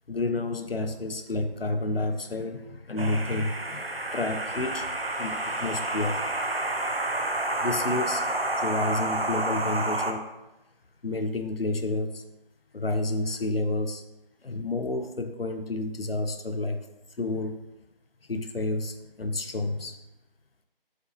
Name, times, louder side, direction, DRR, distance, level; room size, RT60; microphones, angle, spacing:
voice 1, 0.1-6.7 7.6-8.2 8.6-10.3 11.0-12.2 12.7-14.0 14.4-16.8 17.2-17.6 18.3-20.0, left 2 dB, 80° left, 8 dB, 0.8 m, -30 dB
sound 1, 3.0-10.1, right 2 dB, 85° right, 1.0 m, -29 dB
7.1 x 6.1 x 2.8 m, 0.99 s
figure-of-eight pair, 160°, 29 cm